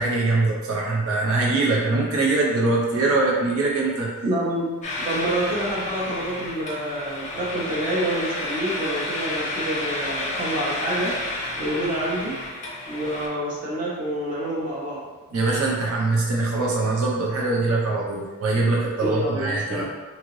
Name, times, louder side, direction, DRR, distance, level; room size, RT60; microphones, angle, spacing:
voice 1, 0.0-4.1 15.3-19.8, right 3 dB, 85° right, -3 dB, 0.5 m, -22 dB
voice 2, 4.2-4.7 5.0-11.1 11.6-12.3 12.9-15.1 19.0-19.8, right 1 dB, 40° right, -6 dB, 0.8 m, -27 dB
sound 1, 4.8-13.3, left 2 dB, 35° left, 0.5 m, -31 dB
2.8 x 2.5 x 3.0 m, 1.3 s
head